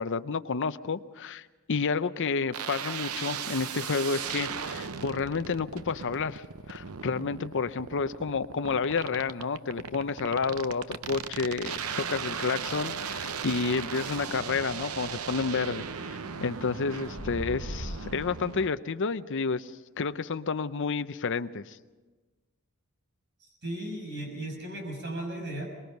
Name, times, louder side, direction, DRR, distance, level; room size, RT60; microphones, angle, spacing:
voice 1, 0.0-19.7 20.0-21.8, left 5 dB, 60° left, 12 dB, 0.7 m, -30 dB
sound 1, 2.5-18.7, right 7 dB, 75° right, 0.7 m, -37 dB
sound 2, 5.1-18.3, left 1 dB, 20° left, 3.0 m, -47 dB
voice 2, 23.4-25.7, right 1 dB, 55° right, 2 dB, 6.1 m, -36 dB
23.5 x 21.5 x 5.4 m, 1.3 s
head